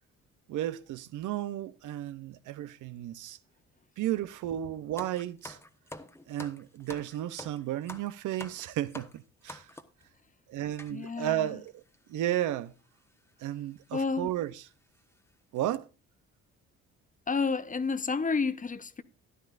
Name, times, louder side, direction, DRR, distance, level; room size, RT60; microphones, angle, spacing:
voice 1, 0.5-3.4 4.0-5.6 6.3-9.7 10.5-11.8 12.1-12.7 13.4-14.5 15.5-15.9, right 13 dB, 80° right, 0.7 m, -33 dB
sound 1, 5.0-10.0 10.8-11.0 11.7-11.8 11.9-12.1 13.1-13.3 13.8-13.9 14.4-14.5 14.9-15.2 15.5-15.8, left 1 dB, 10° left, 1.1 m, -47 dB
voice 2, 10.9-11.7 13.9-14.4 17.3-19.0, left 4 dB, 25° left, 0.8 m, -30 dB
14.0 x 11.0 x 2.5 m
cardioid pair, 90°, 30 cm